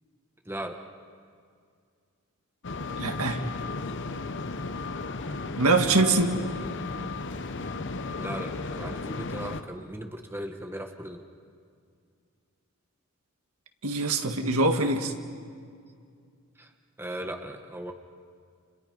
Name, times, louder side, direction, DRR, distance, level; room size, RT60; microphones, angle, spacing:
voice 1, 0.4-0.8 6.0-6.7 8.2-11.2 16.6-16.7 17.0-17.9, right 1 dB, 10° right, 4 dB, 1.3 m, -38 dB
sound 1, 2.6-9.6, left 3 dB, 55° left, 1.0 m, -34 dB
voice 2, 3.0-3.4 5.6-6.4 13.8-15.1, right 3 dB, 75° right, 5 dB, 1.9 m, -23 dB
30.0 x 29.5 x 5.4 m, 2.2 s
head